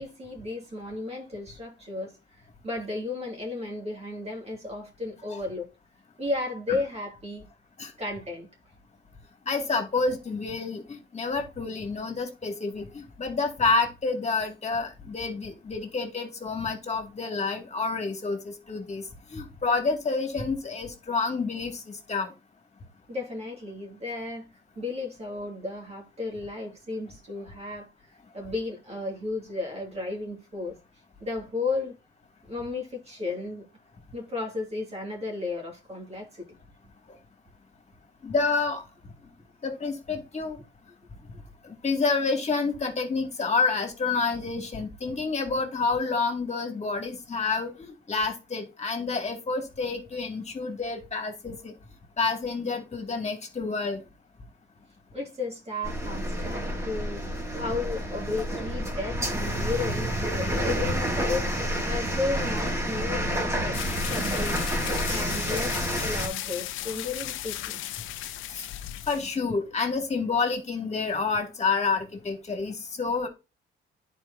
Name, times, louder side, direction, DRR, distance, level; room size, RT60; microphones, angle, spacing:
voice 1, 0.0-2.2 2.6-5.7 6.2-7.5 8.0-8.5 23.1-24.5 24.8-27.9 28.3-30.8 31.2-32.0 32.5-33.6 34.1-36.4 55.1-61.5 61.9-64.7 65.1-67.8, left 3 dB, 30° right, 2.4 m, -34 dB
voice 2, 9.5-10.8 11.1-19.0 19.3-22.3 38.2-38.8 39.6-40.6 41.6-51.7 52.2-54.0 68.5-68.6 69.1-73.3, left 4 dB, 35° left, 2.2 m, -28 dB
sound 1, 55.8-66.3, equal, 15° right, 2.2 m, -29 dB
sound 2, 63.7-69.4, left 14 dB, 85° left, 0.5 m, -36 dB
10.5 x 4.7 x 2.7 m
cardioid pair, 90°, 20 cm